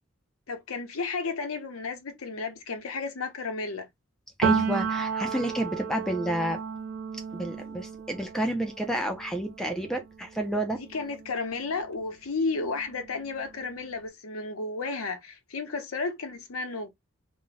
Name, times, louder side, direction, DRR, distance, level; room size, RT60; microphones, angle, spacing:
voice 1, 0.5-3.9 10.8-16.9, left 4 dB, 85° left, 0.7 m, -33 dB
voice 2, 4.4-6.6 7.3-10.8, right 1 dB, ahead, 0.4 m, -30 dB
Piano, 4.4-12.0 12.4-13.9, right 6 dB, 65° right, 0.4 m, -33 dB
2.5 x 2.1 x 3.9 m
head